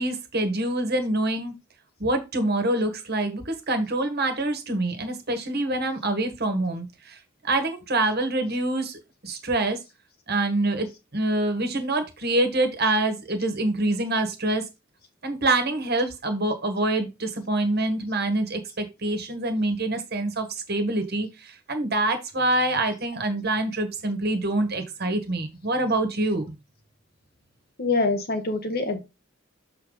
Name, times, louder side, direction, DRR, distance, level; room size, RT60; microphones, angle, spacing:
voice 1, 0.0-1.5 2.0-7.2 7.4-9.8 10.3-10.9 11.1-14.6 15.2-26.5, right 2 dB, 55° right, 6 dB, 1.6 m, -26 dB
voice 2, 27.8-29.0, left 3 dB, 50° left, 6 dB, 1.3 m, -25 dB
6.8 x 4.5 x 4.0 m, 0.25 s
head